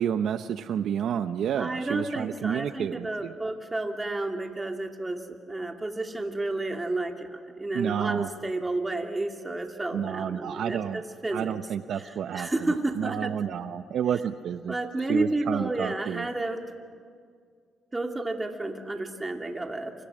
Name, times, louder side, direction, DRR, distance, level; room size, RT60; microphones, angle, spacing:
voice 1, 0.0-3.3 7.7-8.3 9.9-11.0 11.3-12.5 13.0-14.8 15.1-16.3, right 9 dB, 70° right, 10 dB, 0.7 m, -30 dB
voice 2, 1.6-11.6 11.9-13.3 14.7-16.6 17.9-19.9, right 2 dB, 20° right, 3 dB, 2.7 m, -31 dB
28.0 x 25.5 x 6.3 m, 2.1 s
cardioid pair, 90°, 0 cm